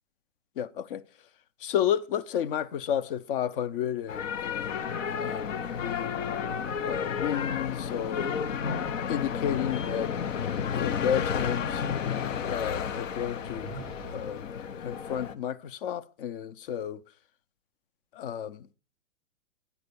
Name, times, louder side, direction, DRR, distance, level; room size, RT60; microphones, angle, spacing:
voice 1, 0.6-1.0 1.6-4.8 5.2-6.2 6.8-8.3 9.1-11.8 12.5-14.5 14.8-17.0 18.1-18.7, left 9 dB, 45° left, 0.5 m, -32 dB
sound 1, 4.1-15.3, left 7 dB, 85° left, 0.8 m, -32 dB
sound 2, 13.3-14.5, right 6 dB, ahead, 0.3 m, -46 dB
9.7 x 4.3 x 6.8 m
hypercardioid pair, 150°, 37 cm